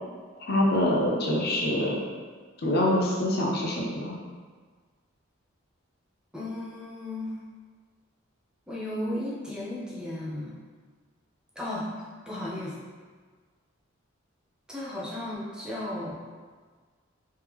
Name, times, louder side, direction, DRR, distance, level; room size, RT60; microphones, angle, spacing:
voice 1, 0.4-2.0 2.6-4.2, left 1 dB, 50° left, -2 dB, 0.6 m, -25 dB
voice 2, 6.3-7.3 8.7-10.5 11.6-11.9 12.3-12.8 14.7-16.2, left 1 dB, 5° right, -7 dB, 0.6 m, -34 dB
3.4 x 3.3 x 3.0 m, 1.5 s
head